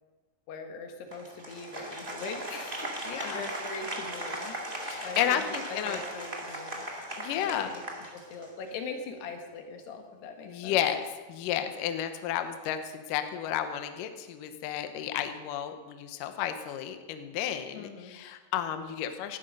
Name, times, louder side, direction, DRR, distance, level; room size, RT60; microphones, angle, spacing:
voice 1, 0.5-6.9 7.4-7.9 8.1-10.8 17.7-18.2, left 4 dB, 90° left, 4 dB, 3.7 m, -41 dB
Applause, 1.1-8.7, right 1 dB, 35° right, 0.8 m, -38 dB
voice 2, 3.1-3.4 4.8-6.0 7.2-7.7 10.5-11.0 11.3-19.4, left 10 dB, 70° left, 8 dB, 2.2 m, -32 dB
18.0 x 12.0 x 5.3 m, 1.3 s
omnidirectional pair, 4.6 m